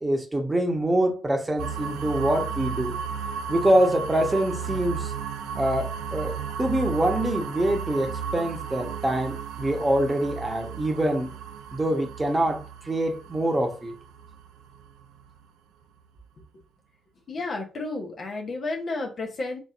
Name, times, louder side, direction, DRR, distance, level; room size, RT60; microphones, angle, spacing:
voice 1, 0.0-3.0 3.5-5.1 5.5-11.3 11.7-13.9, right 1 dB, 25° right, 1.1 m, -25 dB
sound 1, 1.6-15.4, right 7 dB, 70° right, 0.4 m, -34 dB
voice 2, 17.3-19.6, left 2 dB, 50° left, 1.0 m, -31 dB
4.3 x 3.1 x 2.5 m
hypercardioid pair, 40°, 0 cm